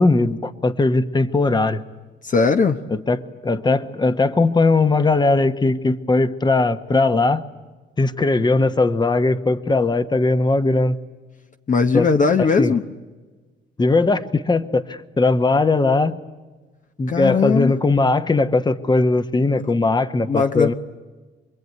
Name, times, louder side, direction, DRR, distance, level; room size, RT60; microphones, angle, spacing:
voice 1, 0.0-1.8 2.9-7.4 8.0-11.0 11.9-12.1 12.4-12.7 13.8-16.2 17.0-20.7, left 3 dB, 20° left, 11 dB, 1.2 m, -19 dB
voice 2, 2.2-2.8 11.7-12.8 17.1-17.7 20.3-20.7, left 5 dB, 40° left, 7 dB, 1.0 m, -18 dB
26.5 x 21.5 x 9.5 m, 1.3 s
cardioid pair, 90°, 20 cm